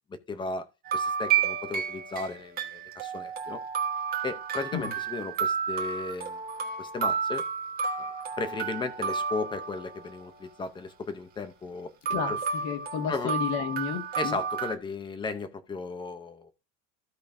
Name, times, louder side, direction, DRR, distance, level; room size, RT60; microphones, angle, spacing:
voice 1, 0.1-0.7 0.9-3.6 4.2-6.4 6.8-7.4 8.4-11.9 12.3-12.4 13.1-13.4 14.2-16.5, left 3 dB, 15° left, 0.7 m, -35 dB
sound 1, 0.8-10.2 12.0-14.7, right 6 dB, 25° right, 1.4 m, -31 dB
voice 2, 12.6-14.4, left 7 dB, 50° left, 1.9 m, -31 dB
15.0 x 5.1 x 2.6 m
cardioid pair, 170°, 38 cm